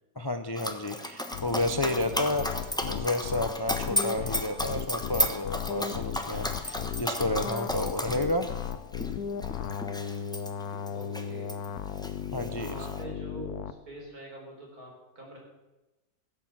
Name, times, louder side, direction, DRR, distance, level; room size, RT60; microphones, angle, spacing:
voice 1, 0.2-2.4 2.8-8.5 12.3-12.7, left 1 dB, 30° left, 8 dB, 0.4 m, -31 dB
Dog, 0.5-11.7 12.0-13.0, left 1 dB, 5° left, 0.8 m, -34 dB
sound 1, 1.3-13.7, left 8 dB, 75° left, 1.3 m, -36 dB
voice 2, 2.1-2.6 10.9-11.5 12.6-15.4, right 1 dB, 75° right, -1 dB, 4.8 m, -45 dB
16.5 x 8.5 x 7.4 m, 1.1 s
omnidirectional pair, 1.6 m